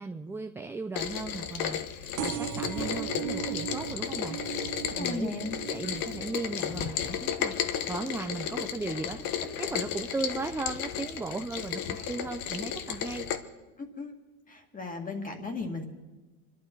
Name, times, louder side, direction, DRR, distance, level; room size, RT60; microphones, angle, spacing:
voice 1, 0.0-13.3, right 3 dB, 5° right, 5 dB, 0.4 m, -37 dB
Rain, 0.9-13.4, left 9 dB, 50° left, 1.2 m, -34 dB
sound 1, 2.2-9.4 9.9-10.3 11.2-11.3 11.5-11.6 11.8-11.9, right 12 dB, 45° right, 1.2 m, -39 dB
voice 2, 4.9-5.6 13.8-14.1 14.5-15.8, left 3 dB, 20° left, 5 dB, 2.2 m, -36 dB
Wind instrument woodwind instrument, 6.2-10.3 10.6-13.5, left 4 dB, 75° left, 5.4 m, -57 dB
25.0 x 12.0 x 4.6 m, 1.2 s
supercardioid pair, 115°, 44 cm